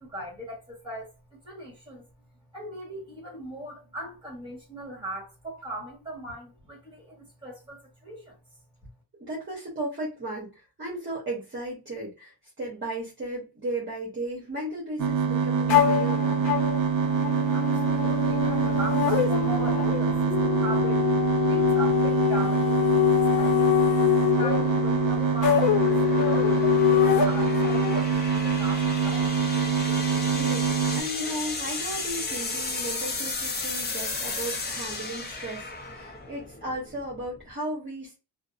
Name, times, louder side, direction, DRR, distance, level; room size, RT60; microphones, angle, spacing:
voice 1, 0.0-2.1 2.5-8.4 17.5-21.1 21.4-23.9 24.4-29.3, right 1 dB, 10° right, 1.2 m, -39 dB
voice 2, 9.2-16.5 30.3-38.2, right 1 dB, 30° right, 0.8 m, -35 dB
sound 1, 15.0-31.0, right 6 dB, 50° right, 0.5 m, -25 dB
sound 2, 15.7-28.0, left 13 dB, 90° left, 0.6 m, -25 dB
sound 3, 19.0-37.5, left 3 dB, 25° left, 0.4 m, -36 dB
2.6 x 2.0 x 2.4 m
wide cardioid pair, 175°, 42 cm